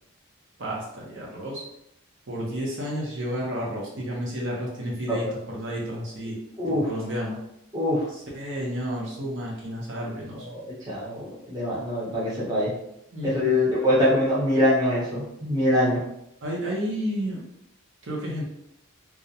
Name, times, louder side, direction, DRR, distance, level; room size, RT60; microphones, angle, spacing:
voice 1, 0.6-1.6 2.3-5.3 5.5-6.4 6.7-7.4 8.1-10.5 13.1-13.7 16.4-17.4 18.0-18.4, equal, 55° right, -4 dB, 0.6 m, -31 dB
voice 2, 6.6-6.9 7.7-8.1 10.3-12.7 13.2-16.0, left 1 dB, 20° right, -7 dB, 0.7 m, -24 dB
2.3 x 2.0 x 2.7 m, 0.80 s
head